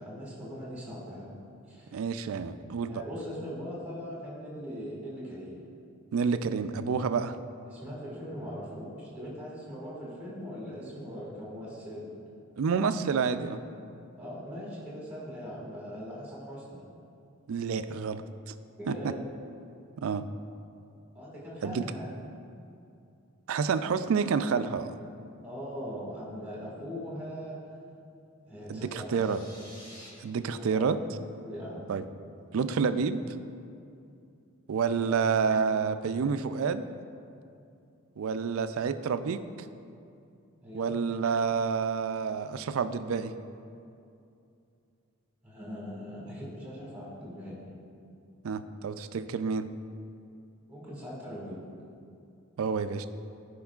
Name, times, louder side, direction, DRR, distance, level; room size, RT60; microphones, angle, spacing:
voice 1, 0.0-1.3 1.7-2.0 2.8-5.6 7.7-12.1 14.2-16.8 18.8-19.2 21.1-22.1 25.4-27.6 28.5-29.3 30.4-30.9 31.4-31.9 35.0-35.2 40.6-40.9 45.4-47.6 50.7-51.6, equal, 5° right, -7 dB, 1.8 m, -40 dB
voice 2, 1.9-3.0 6.1-7.3 12.6-13.6 17.5-18.2 18.5-18.6 18.9-19.1 20.0-20.2 21.6-21.8 23.5-24.9 28.7-29.4 30.2-31.0 31.9-32.1 32.5-33.2 34.7-36.9 38.2-39.4 40.7-43.3 48.4-49.7 52.6-53.1, right 5 dB, 70° right, 11 dB, 0.3 m, -29 dB
sound 1, 28.8-30.1, equal, 20° left, 1.3 m, -51 dB
14.0 x 5.2 x 2.4 m, 2.5 s
head